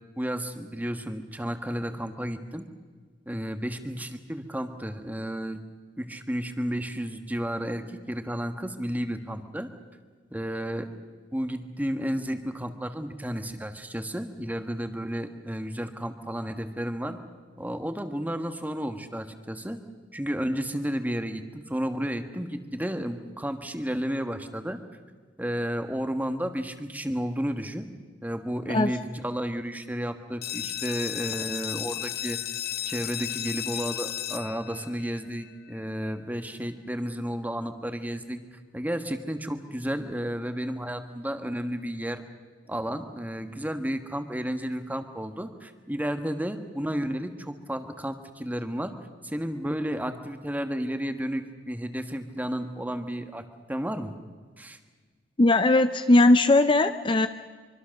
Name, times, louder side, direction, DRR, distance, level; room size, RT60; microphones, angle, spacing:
voice 1, 0.2-2.7 3.3-5.6 6.0-9.7 10.3-10.9 11.3-17.2 17.6-19.8 20.1-24.8 25.4-27.9 28.2-32.4 32.8-42.2 42.7-48.9 49.2-54.1 54.6-54.8, equal, 10° right, 8 dB, 1.5 m, -32 dB
sound 1, 30.4-35.8, left 11 dB, 55° left, 0.8 m, -34 dB
voice 2, 55.4-57.3, left 2 dB, 25° left, 10 dB, 0.6 m, -19 dB
24.5 x 24.5 x 6.5 m, 1.5 s
head